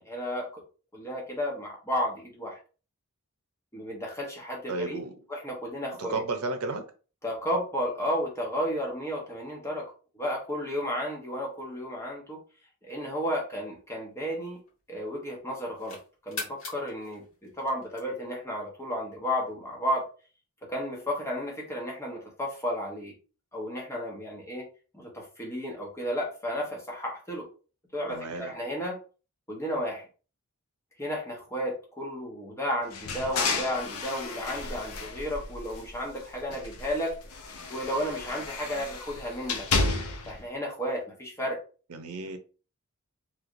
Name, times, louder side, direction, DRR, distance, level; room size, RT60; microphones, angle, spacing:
voice 1, 0.1-0.6 0.9-2.6 3.7-5.0 5.3-6.2 7.2-9.9 10.2-12.4 12.8-14.6 14.9-20.1 20.7-23.1 23.5-24.6 24.9-27.5 27.9-29.0 29.5-30.1 31.0-37.2 37.7-39.7 40.3-41.6, equal, 10° left, 0.9 m, -33 dB
voice 2, 4.7-5.1 6.0-6.8 28.1-28.5 41.9-42.4, right 3 dB, 85° right, 0.6 m, -33 dB
sound 1, 13.5-15.0 15.5-18.4, left 3 dB, 65° left, 1.6 m, -43 dB
sound 2, 32.9-36.1 36.5-40.4, left 3 dB, 80° left, 0.6 m, -32 dB
3.2 x 2.9 x 2.5 m
head